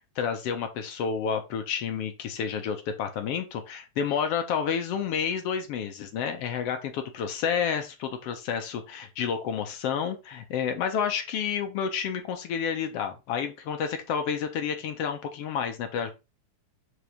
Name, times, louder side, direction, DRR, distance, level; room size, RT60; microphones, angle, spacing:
voice 1, 0.2-16.1, left 7 dB, 65° left, 6 dB, 1.8 m, -30 dB
4.8 x 4.0 x 5.0 m, 0.27 s
omnidirectional pair, 3.4 m